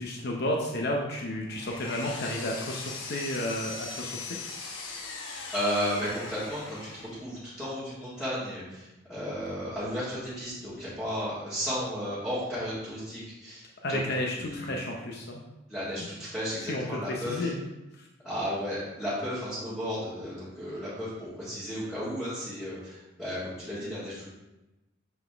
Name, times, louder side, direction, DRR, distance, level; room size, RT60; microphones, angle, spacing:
voice 1, 0.0-4.4 13.8-15.4 16.0-16.1 16.7-17.7, left 1 dB, 50° left, 0 dB, 0.7 m, -32 dB
Power tool, 1.2-7.3, left 4 dB, 75° left, 0.9 m, -40 dB
voice 2, 5.5-13.6 13.9-14.0 14.3-14.8 15.7-17.5 18.2-24.3, equal, 5° left, -13 dB, 1.9 m, -34 dB
7.0 x 4.1 x 3.4 m, 1.0 s
head